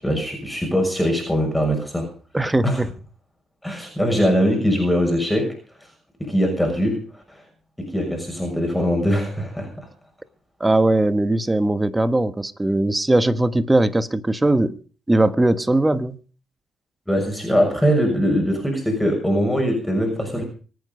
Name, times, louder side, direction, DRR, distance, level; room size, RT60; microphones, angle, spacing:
voice 1, 0.0-2.1 2.6-2.8 3.6-5.5 6.2-7.4 7.8-9.9 17.1-20.4, equal, 5° left, 6.4 m, -22 dB
voice 2, 2.3-2.9 10.6-14.8 15.1-16.2, right 2 dB, 15° right, 1.3 m, -19 dB
24.5 x 9.3 x 5.4 m
supercardioid pair, 60°, 0 cm